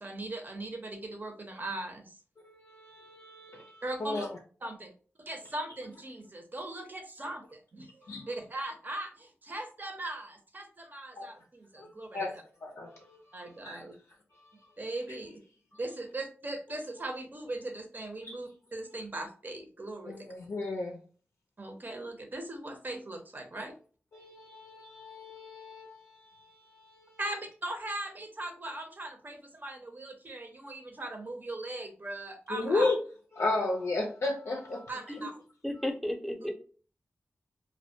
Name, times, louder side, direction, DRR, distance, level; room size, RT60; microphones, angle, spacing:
voice 1, 0.0-2.2 3.8-4.2 4.6-4.9 5.3-12.4 13.3-13.9 14.8-15.4 15.8-20.1 21.6-23.7 27.2-32.9 34.9-35.4, right 2 dB, 40° right, 4 dB, 0.6 m, -39 dB
voice 2, 2.4-4.3 8.0-8.3 11.2-11.3 11.8-11.9 12.1-12.3 12.6-13.2 13.6-13.8 14.4-14.5 18.2-18.3 20.1-21.0 23.6-23.7 24.1-27.2 32.5-33.0 33.4-34.9, left 2 dB, 80° left, 0 dB, 0.4 m, -34 dB
voice 3, 35.6-36.5, left 1 dB, ahead, 3 dB, 0.6 m, -33 dB
2.1 x 2.1 x 2.7 m, 0.40 s
cardioid pair, 50°, 5 cm